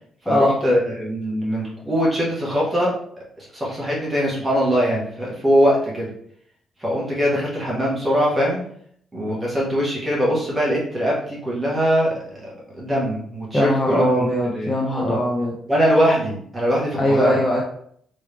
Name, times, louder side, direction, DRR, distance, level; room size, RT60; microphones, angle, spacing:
voice 1, 0.3-2.9 3.4-6.1 6.8-8.6 9.1-12.1 12.4-14.0 14.5-15.2 15.7-17.4, equal, 10° right, -6 dB, 1.4 m, -21 dB
voice 2, 13.5-15.5 17.0-17.6, equal, 15° left, -4 dB, 0.6 m, -20 dB
3.6 x 3.1 x 3.3 m, 0.65 s
cardioid pair, 175°, 0 cm